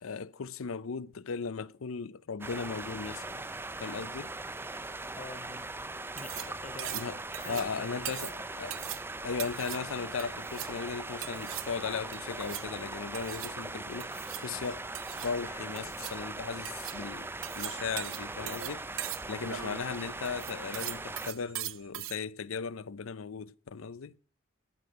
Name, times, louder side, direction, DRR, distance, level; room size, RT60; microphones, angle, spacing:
voice 1, 0.0-3.4 3.8-4.3 6.9-8.8 9.2-14.8 15.2-18.9 19.3-24.1, left 5 dB, 80° left, 0.6 m, -37 dB
sound 1, 2.4-21.3, right 2 dB, 10° right, 0.5 m, -40 dB
voice 2, 5.1-5.7 6.1-8.2, left 4 dB, 35° left, 0.7 m, -47 dB
sound 2, 6.0-22.2, right 13 dB, 75° right, 0.7 m, -42 dB
13.5 x 5.3 x 7.7 m
head